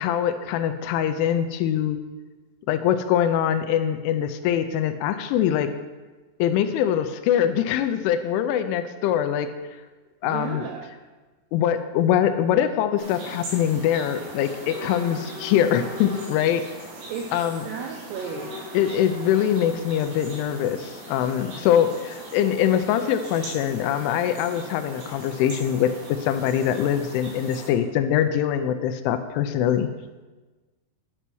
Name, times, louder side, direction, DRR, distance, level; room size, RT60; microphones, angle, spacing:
voice 1, 0.0-2.0 2.7-5.7 6.4-9.5 10.2-10.6 11.5-16.6 17.3-17.6 18.7-29.9, left 10 dB, 85° left, 9 dB, 3.0 m, -23 dB
voice 2, 10.2-10.9 17.1-17.4 17.6-18.5, right 7 dB, 85° right, 3 dB, 2.4 m, -33 dB
sound 1, 13.0-27.7, equal, 65° right, 5.1 m, -39 dB
11.0 x 5.6 x 6.1 m, 1.2 s
omnidirectional pair, 5.6 m